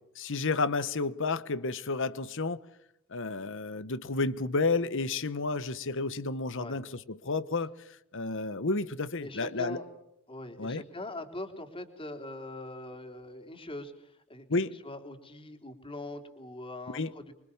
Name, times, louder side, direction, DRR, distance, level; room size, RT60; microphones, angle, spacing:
voice 1, 0.2-2.6 3.1-7.7 8.1-9.8 10.6-10.8 14.5-14.7 16.9-17.1, left 3 dB, 60° left, 1.2 m, -31 dB
voice 2, 9.2-9.8 10.3-17.3, left 2 dB, 25° left, 3.5 m, -42 dB
26.5 x 24.0 x 7.2 m
head